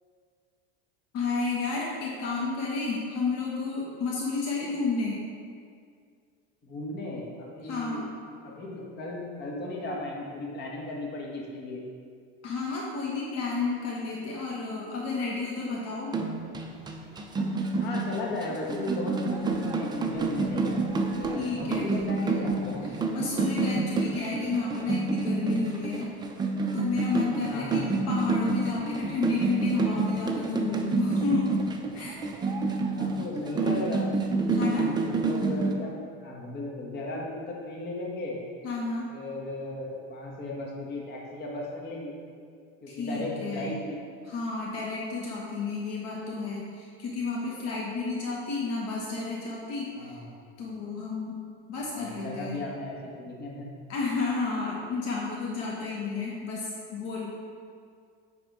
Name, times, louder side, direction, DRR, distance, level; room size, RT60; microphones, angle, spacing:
voice 1, 1.1-5.2 7.6-8.1 12.4-16.1 21.3-21.8 22.2-22.4 22.8-26.1 26.7-31.5 31.9-32.2 33.6-34.0 34.5-34.9 38.6-39.1 42.9-43.8 44.2-50.2 50.6-51.3 51.7-52.6 53.9-57.3, left 4 dB, 50° left, -4 dB, 1.3 m, -31 dB
voice 2, 6.6-8.0 8.4-11.8 17.7-20.9 21.1-22.9 27.5-27.9 32.9-34.0 34.7-38.4 39.1-42.1 42.8-44.0 50.0-50.2 51.9-53.7, left 2 dB, 30° left, -3 dB, 1.5 m, -36 dB
sound 1, 16.1-35.7, right 3 dB, 15° right, 0.5 m, -28 dB
9.0 x 3.6 x 4.7 m, 2.2 s
supercardioid pair, 130°, 32 cm